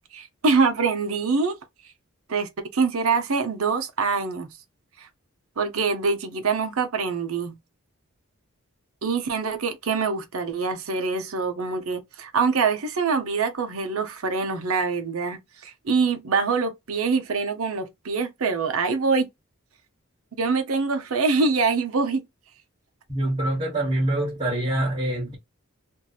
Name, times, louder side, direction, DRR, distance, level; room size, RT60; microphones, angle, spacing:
voice 1, 0.1-1.6 2.3-4.5 5.0-5.1 5.6-7.6 9.0-19.3 20.4-22.2, right 4 dB, 75° right, 0.7 m, -24 dB
voice 2, 23.1-25.3, right 1 dB, 30° right, 1.1 m, -25 dB
2.8 x 2.6 x 2.3 m
head